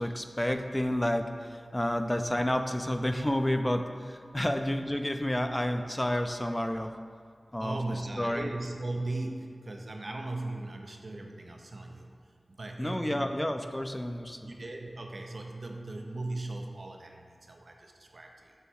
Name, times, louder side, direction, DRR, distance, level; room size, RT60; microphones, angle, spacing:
voice 1, 0.0-6.9 7.5-8.5 12.8-14.5, left 1 dB, 15° left, 6 dB, 0.5 m, -30 dB
voice 2, 7.6-12.1 12.5-13.3 14.4-18.5, right 2 dB, 65° right, 2 dB, 0.7 m, -38 dB
7.0 x 3.5 x 6.2 m, 2.2 s
cardioid pair, 45°, 0 cm